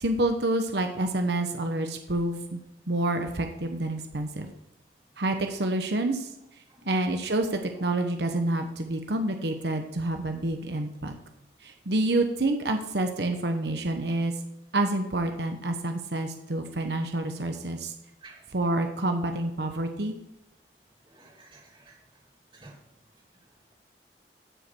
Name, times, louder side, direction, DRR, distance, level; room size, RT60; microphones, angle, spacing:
voice 1, 0.0-2.6 2.9-4.5 5.2-6.3 6.8-11.1 11.6-14.3 14.7-17.9 18.5-20.2, right 2 dB, 70° right, 5 dB, 1.0 m, -28 dB
voice 2, 21.1-22.0 22.5-22.8, right 3 dB, 30° right, 0 dB, 2.5 m, -51 dB
14.0 x 5.2 x 6.2 m, 0.84 s
head